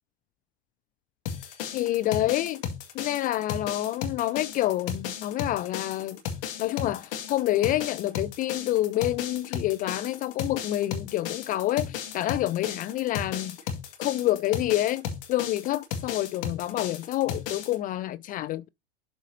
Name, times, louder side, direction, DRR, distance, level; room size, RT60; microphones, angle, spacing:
sound 1, 1.3-17.8, left 8 dB, 65° left, 2.0 m, -35 dB
voice 1, 1.7-2.6 2.9-6.2 6.6-13.6 14.0-18.7, left 14 dB, 30° left, 0.3 m, -28 dB
12.0 x 4.1 x 2.7 m
hypercardioid pair, 85°, 30 cm